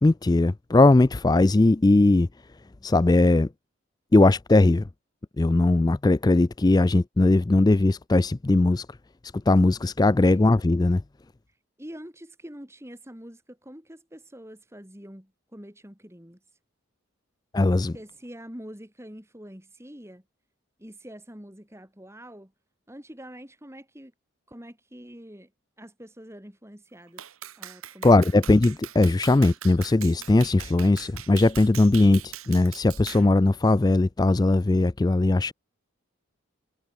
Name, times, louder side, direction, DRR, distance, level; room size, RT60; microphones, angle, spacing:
voice 1, 0.0-2.3 2.8-3.5 4.1-4.9 5.4-8.9 9.5-11.0 17.5-17.9 28.0-35.5, left 2 dB, 20° left, 0.3 m, -19 dB
voice 2, 11.8-16.4 17.8-20.2 20.8-22.5 22.9-24.1 24.5-25.5 25.8-27.2 27.6-28.6, equal, 10° right, 3.1 m, -45 dB
Clapping, 27.2-33.3, right 12 dB, 80° right, 1.6 m, -41 dB
head